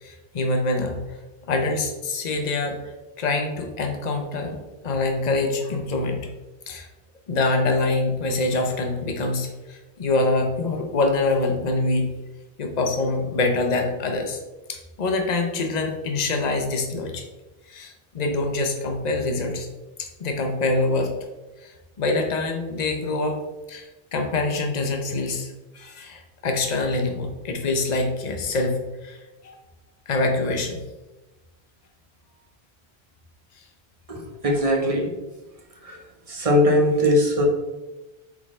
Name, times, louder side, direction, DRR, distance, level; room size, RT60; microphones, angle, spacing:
voice 1, 0.0-1.2 1.5-2.8 3.2-4.6 4.8-6.3 6.7-6.9 7.3-12.1 12.6-14.4 14.7-17.2 17.7-19.7 20.0-21.2 21.6-23.4 23.7-29.2 29.4-29.6 30.1-30.8, left 2 dB, 45° left, 3 dB, 0.9 m, -25 dB
voice 2, 34.1-35.1 35.9-36.0 36.3-37.4, left 1 dB, 35° right, 1 dB, 1.1 m, -20 dB
8.2 x 3.8 x 3.2 m, 1.1 s
omnidirectional pair, 1.1 m